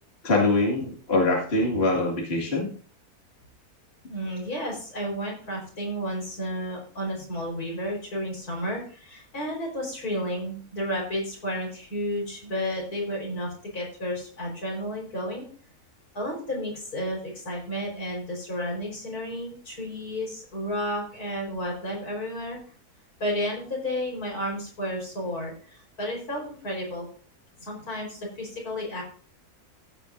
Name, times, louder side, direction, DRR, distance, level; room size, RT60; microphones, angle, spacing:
voice 1, 0.2-2.7, left 2 dB, 40° left, -2 dB, 2.3 m, -23 dB
voice 2, 4.1-15.4 16.1-22.6 23.2-27.1 27.6-29.0, equal, 70° left, 0 dB, 5.0 m, -32 dB
15.0 x 9.0 x 2.6 m, 0.43 s
omnidirectional pair, 1.6 m